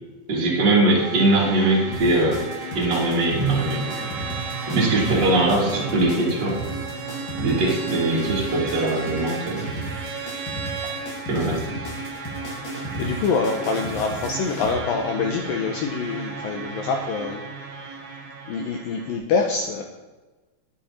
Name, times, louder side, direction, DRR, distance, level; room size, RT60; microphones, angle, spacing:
voice 1, 0.3-2.4 2.7-3.8 4.7-6.6 7.3-9.7 11.3-11.6, right 2 dB, 30° right, -5 dB, 2.8 m, -21 dB
sound 1, 0.9-19.2, right 4 dB, 50° right, 1.9 m, -35 dB
sound 2, 1.9-14.7, equal, 40° left, 1.7 m, -35 dB
Bowed string instrument, 3.4-11.1, right 6 dB, 75° right, 3.2 m, -36 dB
voice 2, 13.0-17.4 18.5-19.8, left 5 dB, 80° left, 2 dB, 2.1 m, -25 dB
11.5 x 11.0 x 4.2 m, 1.2 s
omnidirectional pair, 5.2 m